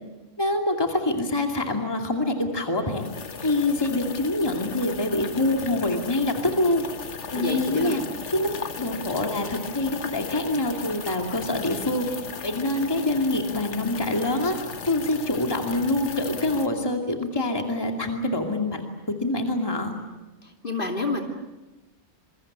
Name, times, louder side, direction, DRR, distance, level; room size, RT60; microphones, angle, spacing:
voice 1, 0.4-3.0 3.4-6.8 7.3-8.0 8.3-12.1 12.4-14.6 14.8-18.8 19.1-19.9, left 2 dB, 20° left, 3 dB, 2.5 m, -25 dB
sound 1, 2.9-16.7, left 6 dB, 65° left, 1.5 m, -37 dB
voice 2, 7.3-8.0 20.4-21.2, left 2 dB, 40° left, 3 dB, 3.0 m, -29 dB
27.5 x 23.0 x 8.8 m, 1.1 s
omnidirectional pair, 1.3 m